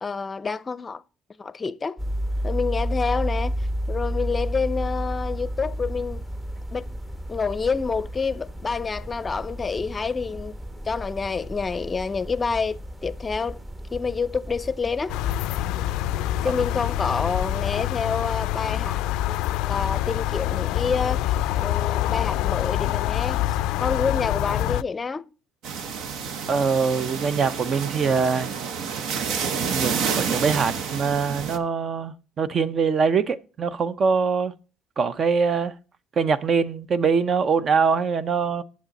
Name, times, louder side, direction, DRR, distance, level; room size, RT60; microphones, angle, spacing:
voice 1, 0.0-1.0 1.4-2.0 2.4-3.6 3.9-6.2 6.7-6.9 7.3-10.6 10.9-13.6 13.9-15.2 16.4-19.0 19.3-23.4 23.8-25.3, left 5 dB, 30° left, 0.5 m, -28 dB
sound 1, 2.0-17.8, equal, 20° right, 1.1 m, -32 dB
sound 2, 15.1-24.8, left 13 dB, 85° left, 0.3 m, -26 dB
sound 3, 25.6-31.6, right 6 dB, 75° right, 0.8 m, -29 dB
voice 2, 26.5-28.5 29.5-34.5 35.0-35.7 36.2-38.6, right 5 dB, 50° right, 0.6 m, -23 dB
8.8 x 7.2 x 4.1 m
supercardioid pair, 85°, 0 cm